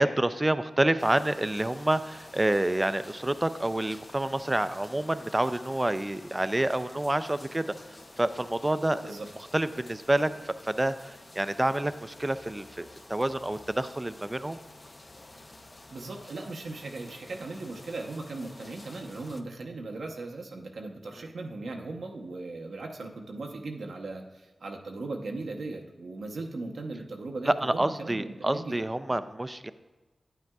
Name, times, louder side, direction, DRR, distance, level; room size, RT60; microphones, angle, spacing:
voice 1, 0.0-7.7 8.2-9.0 9.5-14.6 27.5-29.7, right 1 dB, 20° right, 12 dB, 0.4 m, -28 dB
sound 1, 1.0-19.4, left 2 dB, 35° left, 0.6 m, -50 dB
voice 2, 15.9-29.2, right 3 dB, 80° right, 2 dB, 0.8 m, -38 dB
9.6 x 9.0 x 2.3 m, 1.1 s
wide cardioid pair, 65°, 0 cm